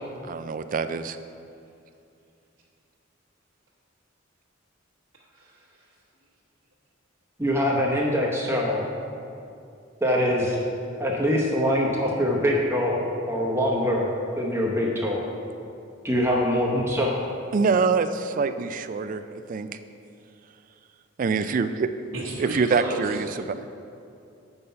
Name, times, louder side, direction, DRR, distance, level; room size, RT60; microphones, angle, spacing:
voice 1, 0.2-1.2 17.5-19.7 21.2-21.9 22.4-23.6, right 5 dB, 40° right, 11 dB, 0.3 m, -25 dB
voice 2, 5.3-5.9 22.1-23.2, right 1 dB, 70° right, -7 dB, 1.2 m, -32 dB
voice 3, 7.4-8.8 10.0-10.6 11.0-14.1 14.4-15.2 16.0-17.2, equal, 15° right, -3 dB, 0.8 m, -23 dB
8.0 x 5.5 x 5.5 m, 2.6 s
head